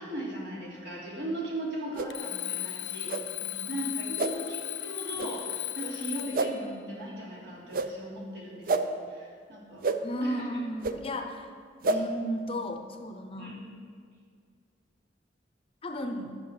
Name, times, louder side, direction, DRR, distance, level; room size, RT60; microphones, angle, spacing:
voice 1, 0.0-3.1 3.7-9.8 10.2-10.5 11.9-12.0 13.4-13.6, right 1 dB, 75° right, -5 dB, 3.1 m, -38 dB
sound 1, 1.9-2.1 3.1-3.2 4.2-4.3 5.2-5.3 6.3-6.5 7.7-7.9 8.7-8.8 9.8-10.0 10.8-10.9 11.8-12.0, right 3 dB, 50° right, 0.5 m, -27 dB
Alarm, 2.1-6.5, left 16 dB, 85° left, 0.6 m, -36 dB
voice 2, 3.4-4.6 10.0-11.5 11.9-13.6 15.8-16.3, equal, 30° left, 6 dB, 0.7 m, -35 dB
11.0 x 6.9 x 5.9 m, 2.1 s
head